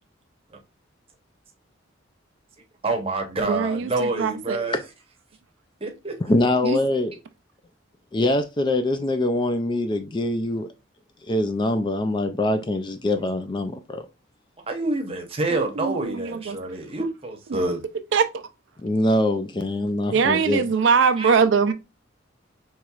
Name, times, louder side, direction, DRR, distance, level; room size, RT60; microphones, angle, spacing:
voice 1, 2.8-4.8 5.8-6.1 14.7-17.8 21.2-21.3, right 2 dB, 30° right, 0.8 m, -27 dB
voice 2, 3.4-4.6 6.6-6.8 15.5-16.6 18.1-18.5 20.1-21.7, right 5 dB, 65° right, 0.4 m, -22 dB
voice 3, 6.2-7.2 8.1-10.7 11.3-14.1 18.8-20.6, left 1 dB, 25° left, 0.4 m, -23 dB
4.5 x 3.0 x 2.3 m
head